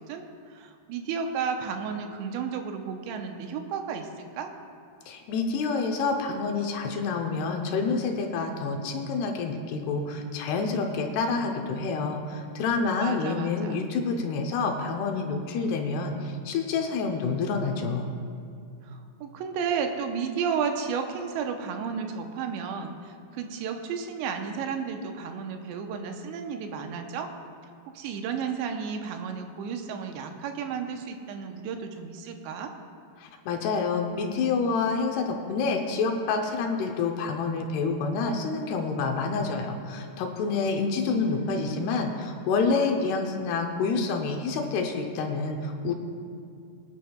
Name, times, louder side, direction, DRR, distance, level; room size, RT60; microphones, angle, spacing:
voice 1, 0.0-4.5 13.0-13.9 18.8-27.3 27.9-32.7 41.2-42.2, right 6 dB, 85° right, 4 dB, 3.1 m, -33 dB
voice 2, 5.1-18.1 33.2-45.9, left 4 dB, 75° left, 3 dB, 2.7 m, -28 dB
24.0 x 10.5 x 2.3 m, 2.4 s
omnidirectional pair, 5.0 m